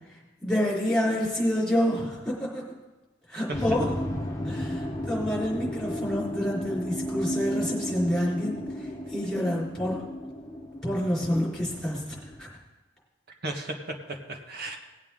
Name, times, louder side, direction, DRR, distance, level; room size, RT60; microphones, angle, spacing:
voice 1, 0.4-2.6 3.3-3.9 4.4-10.0 10.8-12.5, equal, ahead, -6 dB, 4.1 m, -28 dB
sound 1, 3.5-12.4, left 1 dB, 15° left, 1.3 m, -34 dB
voice 2, 13.4-14.8, right 2 dB, 55° right, 2 dB, 1.5 m, -35 dB
18.0 x 8.3 x 3.8 m, 1.2 s
head